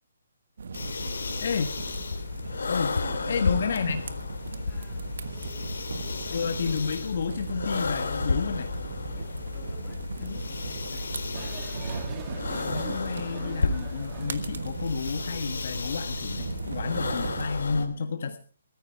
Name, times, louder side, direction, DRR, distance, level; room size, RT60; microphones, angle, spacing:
sound 1, 0.6-17.5, right 5 dB, 65° right, 1.3 m, -38 dB
sound 2, 0.7-17.9, left 4 dB, 80° left, 2.6 m, -33 dB
voice 1, 0.9-1.6 4.6-6.5 9.1-11.6 16.6-18.1, left 3 dB, 15° left, 0 dB, 2.9 m, -54 dB
voice 2, 1.4-1.7 2.7-3.0 3.3-4.0 6.3-8.7 10.2-10.4 12.5-18.4, left 5 dB, 55° left, 7 dB, 1.4 m, -31 dB
sound 3, 11.3-14.6, right 7 dB, 20° right, 1.5 m, -43 dB
14.5 x 14.5 x 4.6 m, 0.40 s
hypercardioid pair, 170°, 0 cm